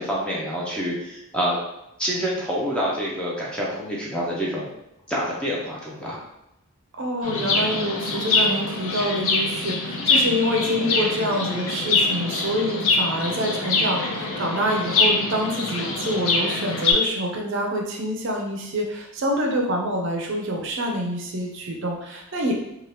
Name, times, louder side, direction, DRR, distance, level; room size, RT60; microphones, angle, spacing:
voice 1, 0.0-1.6 2.0-4.7 5.1-6.2, equal, 5° left, -5 dB, 0.5 m, -27 dB
voice 2, 7.0-22.5, equal, 55° right, 1 dB, 0.5 m, -26 dB
Chirp tweet, 7.2-16.9, left 3 dB, 70° left, 0.5 m, -24 dB
2.7 x 2.3 x 3.3 m, 0.85 s
head